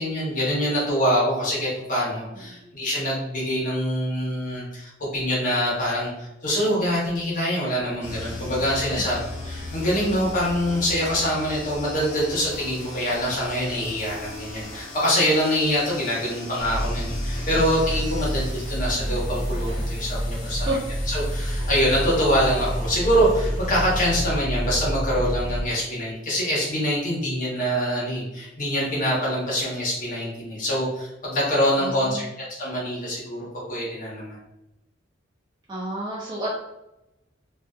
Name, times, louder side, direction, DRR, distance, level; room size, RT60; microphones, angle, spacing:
voice 1, 0.0-20.7 21.1-32.3 32.6-34.4, equal, 45° left, -6 dB, 1.0 m, -25 dB
sound 1, 8.0-24.3, left 2 dB, 80° left, 0.9 m, -38 dB
sound 2, 16.6-25.6, equal, 80° right, 1.0 m, -28 dB
voice 2, 31.8-32.3 35.7-36.5, right 2 dB, 25° right, -7 dB, 0.5 m, -30 dB
2.5 x 2.4 x 2.3 m, 0.91 s
head